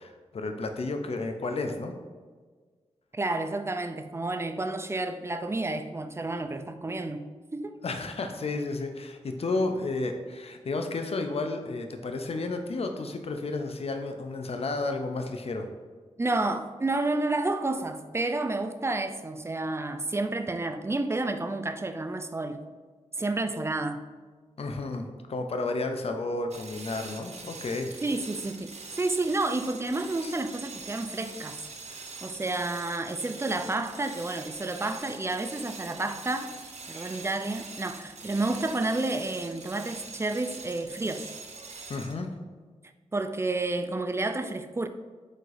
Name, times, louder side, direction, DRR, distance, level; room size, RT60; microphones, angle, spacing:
voice 1, 0.0-1.9 7.8-15.7 24.6-27.9 30.2-30.3 41.9-42.3, left 3 dB, 55° left, 0.6 m, -32 dB
voice 2, 3.1-7.8 16.2-22.6 23.2-24.0 28.0-31.6 32.2-36.5 36.9-41.3 43.1-44.9, right 2 dB, 20° right, 0.4 m, -30 dB
sound 1, 26.5-42.2, right 4 dB, 60° right, 0.7 m, -43 dB
5.1 x 4.0 x 2.6 m
cardioid pair, 45°, 12 cm